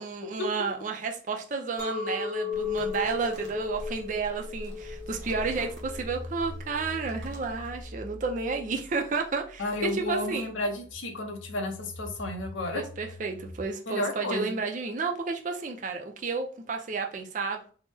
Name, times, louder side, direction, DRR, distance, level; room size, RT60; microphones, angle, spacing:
voice 1, 0.0-10.5 12.7-17.6, right 4 dB, 40° right, 3 dB, 0.4 m, -31 dB
Chink clink, 1.8-7.0, left 6 dB, 15° left, 0.8 m, -35 dB
sound 1, 2.5-7.9, equal, 65° right, 0.8 m, -44 dB
sound 2, 4.8-13.7, left 1 dB, 50° left, 0.6 m, -45 dB
voice 2, 9.6-12.8 13.9-14.6, left 2 dB, 85° left, 5 dB, 0.7 m, -32 dB
3.3 x 2.0 x 3.3 m, 0.42 s
head